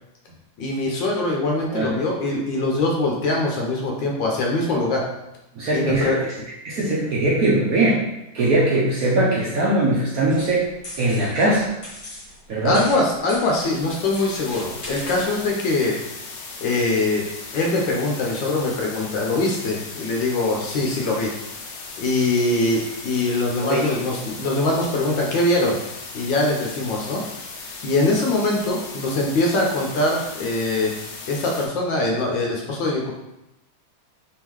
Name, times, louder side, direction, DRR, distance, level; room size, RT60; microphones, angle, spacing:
voice 1, 0.6-5.1 5.7-6.3 12.6-16.0 16.6-17.3 17.5-21.3 22.0-25.8 26.1-27.2 27.6-31.0 31.3-33.1, left 2 dB, 70° left, -1 dB, 1.3 m, -22 dB
voice 2, 5.6-6.1 6.6-8.0 8.3-10.7 11.0-11.7 12.5-12.8 23.7-23.9, right 2 dB, 75° right, -5 dB, 0.8 m, -20 dB
sound 1, 10.3-15.5, left 1 dB, 45° left, 1.8 m, -40 dB
sound 2, 13.6-31.7, left 4 dB, 90° left, 0.8 m, -37 dB
3.7 x 3.5 x 3.0 m, 0.90 s
omnidirectional pair, 2.3 m